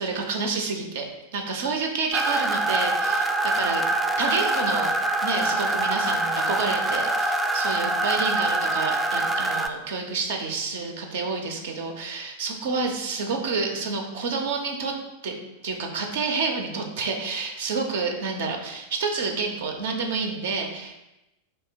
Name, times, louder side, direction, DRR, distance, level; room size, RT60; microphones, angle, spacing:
voice 1, 0.0-3.8 4.2-4.9 5.2-14.9 15.2-15.4 15.6-20.9, right 4 dB, 55° right, 3 dB, 0.5 m, -29 dB
sound 1, 2.1-9.7, right 2 dB, 5° right, 0.3 m, -24 dB
3.2 x 2.7 x 4.4 m, 0.94 s
figure-of-eight pair, 90°, 0 cm